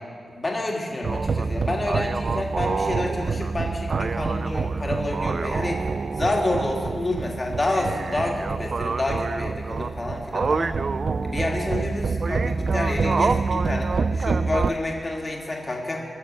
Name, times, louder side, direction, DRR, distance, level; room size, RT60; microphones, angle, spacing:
voice 1, 0.3-5.9 6.2-10.7 11.2-16.0, left 2 dB, 25° left, -1 dB, 2.2 m, -28 dB
sound 1, 1.0-14.7, right 4 dB, 50° right, 0.4 m, -26 dB
19.0 x 7.1 x 7.5 m, 2.3 s
wide cardioid pair, 125°, 0 cm